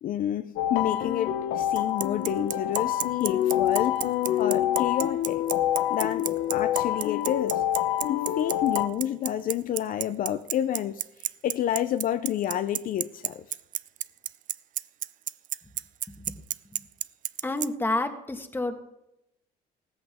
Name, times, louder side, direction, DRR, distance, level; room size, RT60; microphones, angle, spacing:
voice 1, 0.0-4.0 4.4-5.4 5.9-7.6 8.1-11.0 11.4-13.5, left 11 dB, 55° left, 0.5 m, -29 dB
sound 1, 0.6-8.9, left 11 dB, 80° left, 0.9 m, -27 dB
Bicycle, 1.8-17.7, right 12 dB, 50° right, 0.4 m, -30 dB
voice 2, 17.4-18.8, left 2 dB, 10° left, 1.5 m, -29 dB
16.5 x 14.0 x 3.6 m
cardioid pair, 110°, 17 cm